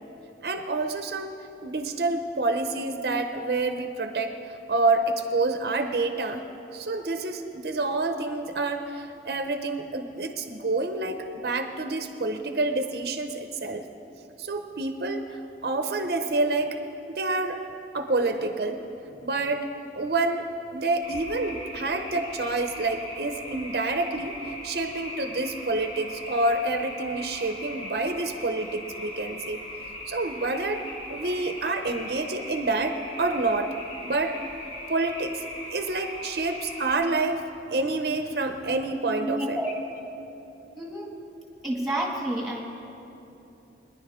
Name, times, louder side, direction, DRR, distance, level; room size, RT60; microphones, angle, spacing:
voice 1, 0.4-1.3 1.6-4.3 4.7-6.4 6.7-13.8 14.4-16.8 17.1-17.6 17.9-18.8 19.2-19.7 19.9-20.4 20.7-24.3 24.6-29.6 30.1-30.8 31.1-33.8 34.0-34.4 34.9-35.4 35.7-37.4 37.7-39.6, right 2 dB, 60° right, 6 dB, 0.7 m, -28 dB
sound 1, 21.0-37.0, left 1 dB, 40° left, 3.0 m, -39 dB
voice 2, 39.2-39.7 40.0-40.1 40.8-41.1 41.6-42.6, right 1 dB, ahead, -2 dB, 2.0 m, -29 dB
23.0 x 10.5 x 3.6 m, 2.9 s
head